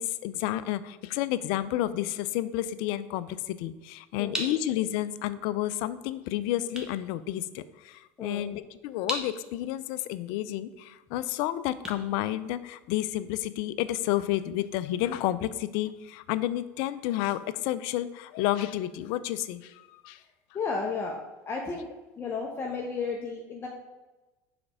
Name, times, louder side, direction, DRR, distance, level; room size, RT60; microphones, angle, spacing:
voice 1, 0.0-20.2, left 13 dB, 70° left, 15 dB, 0.4 m, -31 dB
sound 1, 3.7-13.1, right 1 dB, 10° right, 1.3 m, -42 dB
voice 2, 4.2-4.5 8.2-8.4 20.5-21.2 21.5-21.9 22.2-23.7, left 4 dB, 30° left, -1 dB, 0.9 m, -33 dB
4.9 x 4.2 x 4.9 m, 1.1 s
supercardioid pair, 95°, 8 cm